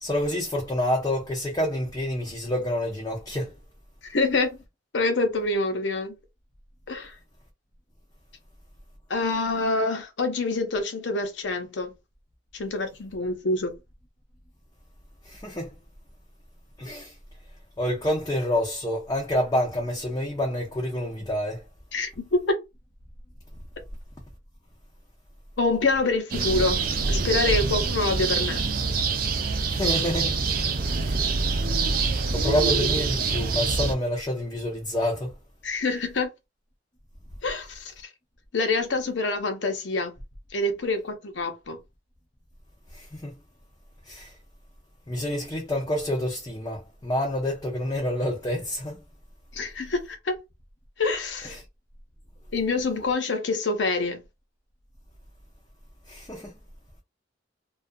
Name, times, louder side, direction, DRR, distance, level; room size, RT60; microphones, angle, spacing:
voice 1, 0.0-3.5 15.2-15.7 16.8-17.1 17.8-21.6 29.7-30.4 31.0-31.3 32.3-35.3 42.9-43.3 44.1-44.3 45.1-49.0 51.4-51.6 56.1-56.5, left 1 dB, 20° left, 0.5 m, -28 dB
voice 2, 4.0-4.6 4.9-6.1 6.9-7.1 9.1-11.9 12.5-13.7 21.9-22.6 25.6-28.6 35.6-36.3 37.4-37.9 38.5-40.1 40.5-41.8 49.5-50.3 51.0-51.6 52.5-54.2, left 3 dB, 90° left, 0.7 m, -26 dB
sound 1, 26.3-33.9, right 4 dB, 50° right, 0.5 m, -25 dB
2.4 x 2.3 x 2.5 m
head